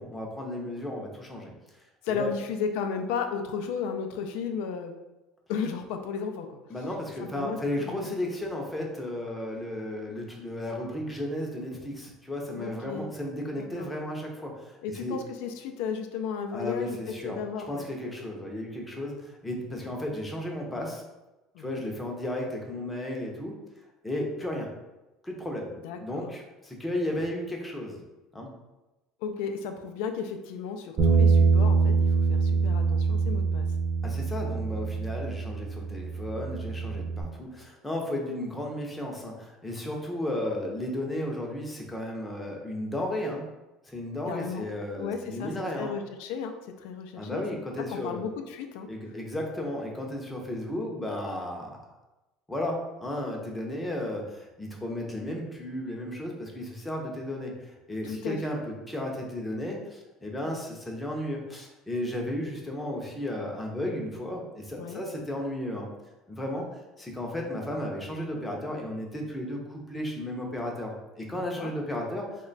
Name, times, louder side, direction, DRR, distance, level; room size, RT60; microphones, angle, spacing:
voice 1, 0.0-1.5 2.1-2.3 6.7-15.2 16.5-17.4 17.7-21.0 21.6-23.6 24.0-24.7 25.2-25.7 26.0-28.0 28.3-28.5 34.0-43.5 43.8-45.9 47.1-48.3 48.9-51.8 52.5-65.9 66.3-72.3, left 1 dB, 10° left, 0 dB, 0.5 m, -34 dB
voice 2, 2.0-4.9 5.5-6.6 7.2-8.3 12.6-13.1 13.6-13.9 14.8-17.0 17.2-17.9 21.5-21.8 25.8-26.3 29.2-33.7 44.3-44.7 44.9-45.5 45.8-47.4 47.9-48.9 58.0-58.4 64.8-65.0 71.3-71.7, left 6 dB, 85° left, 6 dB, 0.3 m, -34 dB
Bass guitar, 31.0-37.2, right 4 dB, 35° right, 0.6 m, -24 dB
3.1 x 2.2 x 3.8 m, 1.0 s
cardioid pair, 150°, 0 cm